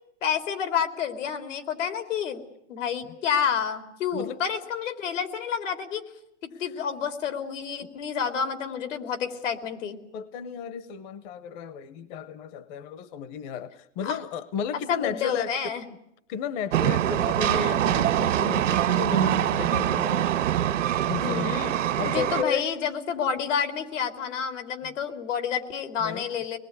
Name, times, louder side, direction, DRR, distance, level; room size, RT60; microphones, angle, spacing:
voice 1, 0.2-2.4 2.7-6.0 6.4-10.0 14.0-14.2 14.9-15.8 21.2-21.7 22.0-26.6, left 7 dB, 80° left, 8 dB, 3.6 m, -29 dB
voice 2, 10.1-15.5 16.3-20.3 21.1-21.6 22.0-22.8 24.8-24.9 26.0-26.3, left 7 dB, 40° left, 15 dB, 1.0 m, -33 dB
Train, 16.7-22.4, right 11 dB, 85° right, 1.9 m, -24 dB
25.0 x 20.5 x 9.7 m, 0.79 s
supercardioid pair, 155°, 37 cm